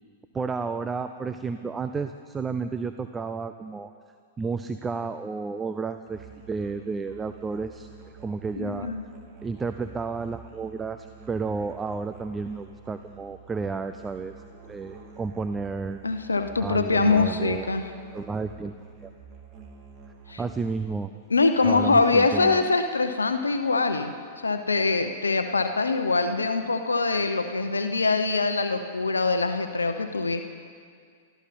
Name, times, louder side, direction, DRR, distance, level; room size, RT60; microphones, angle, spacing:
voice 1, 0.3-3.9 4.4-7.9 8.2-8.9 9.4-14.3 14.7-16.0 16.6-17.7 18.1-18.7 19.0-19.1 20.4-21.1 21.6-22.7, right 4 dB, 15° right, 9 dB, 0.5 m, -31 dB
Musical instrument, 6.1-20.8, right 5 dB, 35° right, 2.8 m, -48 dB
voice 2, 8.6-9.0 16.0-17.8 20.3-20.4 21.3-24.1 24.4-30.4, left 3 dB, 90° left, 7 dB, 0.8 m, -23 dB
24.0 x 14.0 x 4.2 m, 2.1 s
hypercardioid pair, 105°, 0 cm